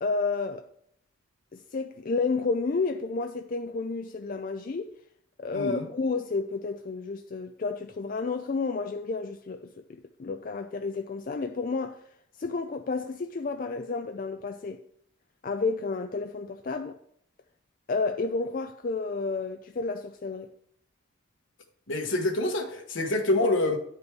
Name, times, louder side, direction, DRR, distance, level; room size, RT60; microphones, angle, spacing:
voice 1, 0.0-0.7 1.5-4.9 5.4-12.0 12.4-14.8 15.4-17.0 17.9-20.5, left 4 dB, 45° left, 0.4 m, -31 dB
voice 2, 5.5-5.8 21.9-23.8, left 2 dB, 70° left, 1.3 m, -26 dB
9.7 x 5.2 x 4.7 m
head